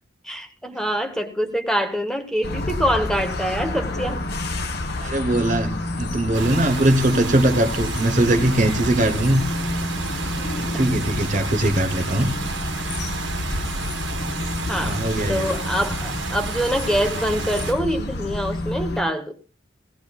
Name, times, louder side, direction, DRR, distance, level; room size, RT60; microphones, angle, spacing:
voice 1, 0.2-4.2 10.7-10.8 14.7-15.0 15.3-19.4, equal, 5° left, 1.0 m, -25 dB
sound 1, 2.4-19.0, left 1 dB, 55° left, 1.1 m, -29 dB
voice 2, 5.0-9.4 10.0-10.1 10.5-12.3 14.8-15.5, right 1 dB, 40° right, 1.0 m, -21 dB
sound 2, 6.3-17.7, right 4 dB, 60° right, 1.8 m, -32 dB
18.0 x 17.0 x 2.3 m
head